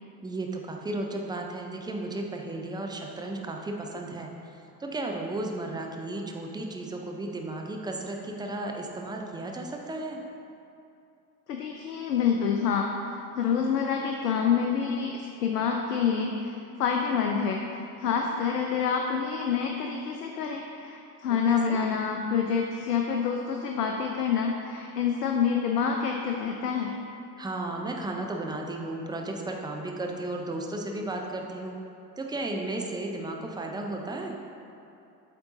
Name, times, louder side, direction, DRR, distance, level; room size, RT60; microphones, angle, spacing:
voice 1, 0.2-4.3 4.8-10.2 21.3-21.8 27.4-31.8 32.2-34.4, right 2 dB, 10° right, 1 dB, 0.5 m, -34 dB
voice 2, 11.5-26.9, left 6 dB, 75° left, 2 dB, 0.6 m, -27 dB
7.9 x 3.6 x 4.0 m, 2.6 s
figure-of-eight pair, 65°, 49 cm